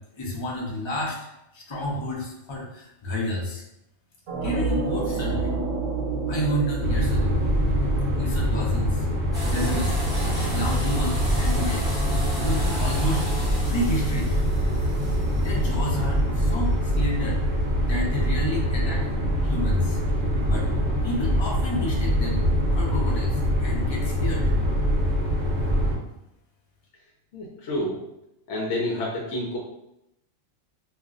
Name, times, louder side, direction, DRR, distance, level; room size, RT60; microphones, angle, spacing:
voice 1, 0.1-1.2 1.5-3.6 4.4-5.5 6.3-7.4 8.2-9.2 9.4-10.0 10.3-12.0 12.4-13.3 13.7-14.4 15.3-17.4 17.8-19.1 19.4-20.0 20.4-20.7 21.0-22.4 22.7-24.5, equal, 35° left, -3 dB, 0.4 m, -30 dB
sound 1, 4.3-10.1, right 3 dB, 75° right, 1.0 m, -29 dB
sound 2, 6.8-26.0, equal, 40° right, 0.8 m, -24 dB
sound 3, 9.3-17.7, equal, 5° right, 0.7 m, -34 dB
voice 2, 27.3-28.0 28.5-29.6, left 1 dB, 70° left, -2 dB, 0.9 m, -28 dB
2.5 x 2.0 x 3.6 m, 0.85 s
omnidirectional pair, 1.3 m